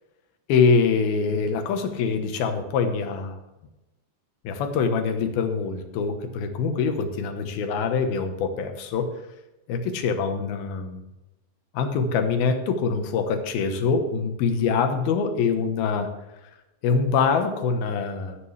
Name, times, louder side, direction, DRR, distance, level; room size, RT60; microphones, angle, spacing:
voice 1, 0.5-3.4 4.4-9.1 9.7-11.0 11.7-16.1 16.8-18.4, left 5 dB, 90° left, 6 dB, 3.1 m, -24 dB
17.5 x 10.0 x 3.4 m, 0.98 s
omnidirectional pair, 4.2 m